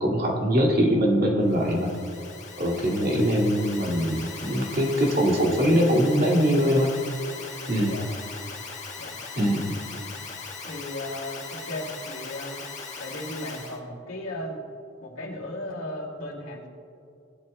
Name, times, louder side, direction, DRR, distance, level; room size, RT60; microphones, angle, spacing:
voice 1, 0.0-1.9 2.6-6.9 7.7-7.9 9.3-9.7, equal, 45° right, -2 dB, 2.2 m, -22 dB
Alarm, 1.4-13.8, left 4 dB, 35° left, 1.4 m, -39 dB
voice 2, 10.6-12.6 13.0-14.7 15.0-16.7, left 1 dB, 85° left, -1 dB, 2.3 m, -36 dB
17.5 x 12.0 x 2.2 m, 2.6 s
head